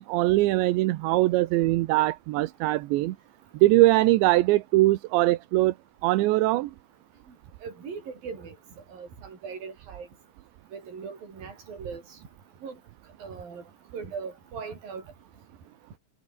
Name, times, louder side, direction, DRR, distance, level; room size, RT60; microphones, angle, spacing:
voice 1, 0.0-3.2 3.6-5.7 6.0-6.7, right 18 dB, 80° right, 3.2 m, -22 dB
voice 2, 7.6-8.6 8.9-10.1 10.7-12.2 12.6-12.8 13.2-13.6 13.9-15.0, right 5 dB, 50° right, 7.0 m, -39 dB
omnidirectional pair, 5.2 m